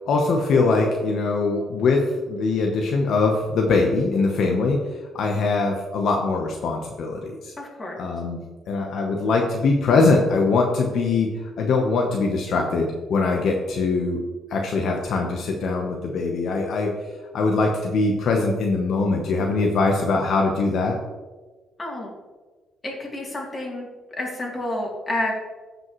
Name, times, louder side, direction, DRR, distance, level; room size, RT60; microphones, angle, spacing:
voice 1, 0.1-4.8 5.1-7.5 8.0-14.2 14.5-17.0 17.3-21.0, left 3 dB, 70° left, 1 dB, 0.9 m, -22 dB
voice 2, 7.6-8.0 21.8-22.1 22.8-23.9 24.2-25.3, left 1 dB, 25° left, -2 dB, 2.9 m, -29 dB
13.5 x 5.3 x 3.1 m, 1.3 s
cardioid pair, 90°, 0 cm